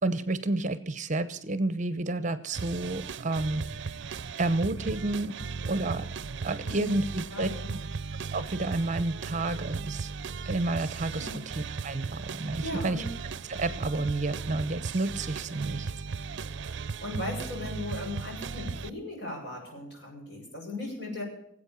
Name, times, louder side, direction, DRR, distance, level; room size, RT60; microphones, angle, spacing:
voice 1, 0.0-3.9 4.4-5.4 5.7-6.1 6.4-7.5 8.3-10.1 10.5-13.0 13.5-15.9 16.2-16.3, right 2 dB, 40° right, 14 dB, 0.8 m, -30 dB
sound 1, 2.5-18.9, right 5 dB, 65° right, 0.5 m, -37 dB
voice 2, 6.7-7.0 7.3-7.7 11.1-11.4 12.1-12.2 12.6-13.0 17.0-21.2, left 2 dB, 55° left, -1 dB, 6.9 m, -37 dB
18.5 x 8.4 x 7.1 m, 0.73 s
head